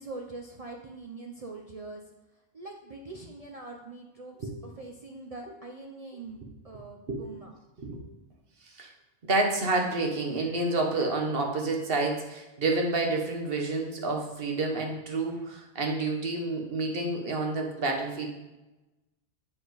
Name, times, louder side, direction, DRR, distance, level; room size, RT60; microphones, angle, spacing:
voice 1, 0.0-2.0 2.5-6.4 6.6-7.5, right 3 dB, 40° right, 2 dB, 0.6 m, -43 dB
voice 2, 9.3-18.3, right 2 dB, 60° right, 2 dB, 1.3 m, -29 dB
7.4 x 4.9 x 4.0 m, 1.0 s
omnidirectional pair, 1.1 m